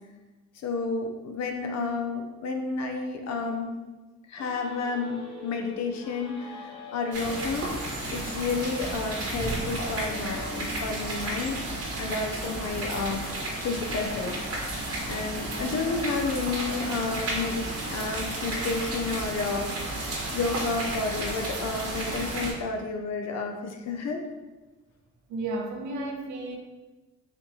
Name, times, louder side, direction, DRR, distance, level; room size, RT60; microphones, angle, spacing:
voice 1, 0.6-3.7 4.3-7.7 8.1-13.2 13.6-14.4 15.1-17.6 17.9-19.7 20.3-24.2, left 4 dB, 60° left, 3 dB, 0.5 m, -31 dB
sound 1, 4.4-12.9, left 3 dB, 20° left, 0.8 m, -45 dB
sound 2, 7.1-22.5, right 1 dB, 50° right, 1.0 m, -32 dB
voice 2, 25.3-26.6, right 2 dB, 75° right, 3 dB, 0.7 m, -32 dB
4.1 x 2.8 x 3.0 m, 1.2 s
cardioid pair, 90°, 30 cm